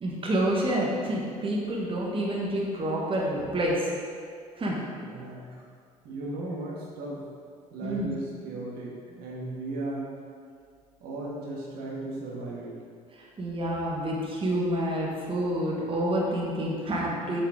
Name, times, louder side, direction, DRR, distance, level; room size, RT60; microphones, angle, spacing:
voice 1, 0.0-3.9 4.6-4.8 7.8-8.1 13.2-17.4, right 1 dB, 30° right, -3 dB, 1.4 m, -28 dB
voice 2, 5.0-5.5 6.0-7.2 7.7-10.2 11.0-12.7, right 2 dB, 60° right, -5 dB, 1.4 m, -36 dB
7.5 x 4.7 x 3.5 m, 2.2 s
hypercardioid pair, 60°, 18 cm